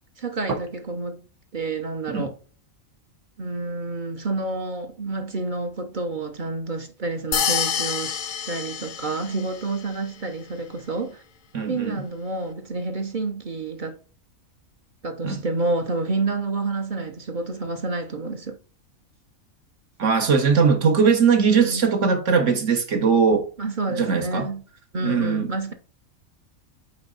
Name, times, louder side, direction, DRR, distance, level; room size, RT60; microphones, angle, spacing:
voice 1, 0.2-1.2 1.5-2.4 3.4-8.2 8.5-11.2 11.7-14.0 15.0-18.6 21.4-21.8 23.6-24.6 24.9-25.7, right 3 dB, 40° right, 0.8 m, -29 dB
sound 1, 7.3-9.6, left 8 dB, 55° left, 0.5 m, -27 dB
voice 2, 11.5-12.0 15.2-15.4 20.0-23.5 24.0-24.5 25.0-25.5, right 5 dB, 60° right, 1.5 m, -20 dB
8.7 x 3.6 x 3.9 m
omnidirectional pair, 1.5 m